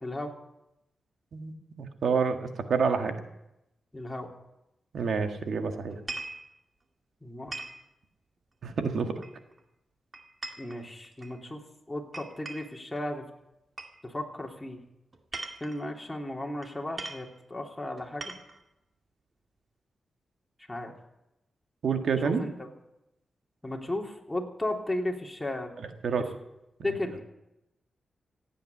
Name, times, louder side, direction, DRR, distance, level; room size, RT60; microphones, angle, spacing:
voice 1, 0.0-0.3 3.9-4.3 7.2-7.6 10.6-11.6 11.9-13.3 14.0-14.8 15.6-18.3 20.7-20.9 22.2-22.5 23.6-25.7 26.8-27.2, left 1 dB, 15° left, 0 dB, 3.3 m, -35 dB
voice 2, 1.3-2.4 2.7-3.1 4.9-6.0 8.6-9.1 21.8-22.4 26.0-26.2, right 5 dB, 75° right, 6 dB, 1.7 m, -28 dB
sound 1, 5.9-6.4 7.5-7.8 9.2-9.6 10.1-11.3 12.1-12.8 13.8-14.0 15.1-15.8 16.6-16.7 17.0-17.3 18.0-18.6, right 3 dB, 45° right, 2.2 m, -40 dB
16.0 x 9.1 x 8.5 m, 0.90 s
cardioid pair, 55°, 0 cm